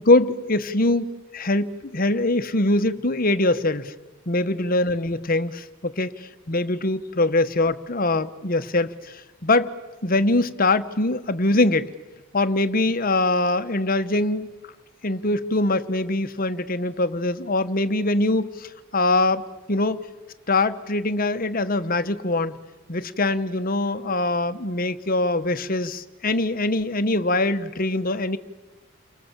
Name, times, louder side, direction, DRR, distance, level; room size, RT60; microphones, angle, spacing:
voice 1, 0.0-3.9 4.3-6.1 6.5-9.7 10.0-11.9 12.3-14.5 15.0-20.0 20.5-22.6 22.9-28.4, left 2 dB, 45° left, 12 dB, 1.1 m, -23 dB
30.0 x 24.5 x 7.4 m, 1.2 s
head